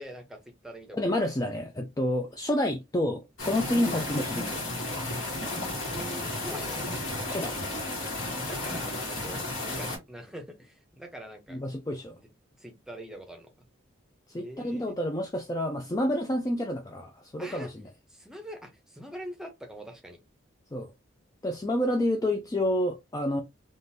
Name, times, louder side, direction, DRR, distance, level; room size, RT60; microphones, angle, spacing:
voice 1, 0.0-1.3 3.8-4.0 5.4-5.5 5.9-7.0 8.4-11.6 12.1-12.3 12.6-13.6 14.4-15.0 17.4-17.7 18.1-20.2, equal, 5° right, 0.7 m, -44 dB
voice 2, 1.0-4.6 7.3-7.6 11.5-12.1 14.3-17.7 20.7-20.9 21.4-23.4, left 1 dB, 15° left, 0.3 m, -29 dB
sound 1, 3.4-10.0, left 2 dB, 60° left, 1.9 m, -33 dB
3.7 x 2.4 x 2.7 m
head